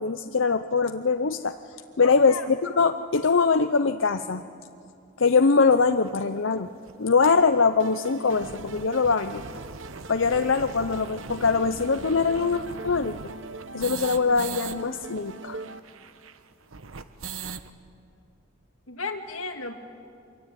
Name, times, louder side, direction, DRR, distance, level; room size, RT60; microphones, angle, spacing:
voice 1, 0.0-1.5 2.0-4.4 5.2-6.7 7.0-9.4 10.1-13.2 13.7-15.6, left 4 dB, 65° left, 8 dB, 0.7 m, -22 dB
voice 2, 2.0-2.5 18.9-19.8, left 4 dB, 90° left, 5 dB, 2.3 m, -34 dB
sound 1, 6.1-6.2 6.9-7.0 7.2-7.3 7.6-7.7 8.1-14.8 15.0-15.1 15.3-17.7, right 5 dB, 85° right, 1.1 m, -41 dB
sound 2, 7.8-15.8, right 3 dB, 60° right, 1.0 m, -41 dB
25.5 x 23.0 x 9.2 m, 2.5 s
head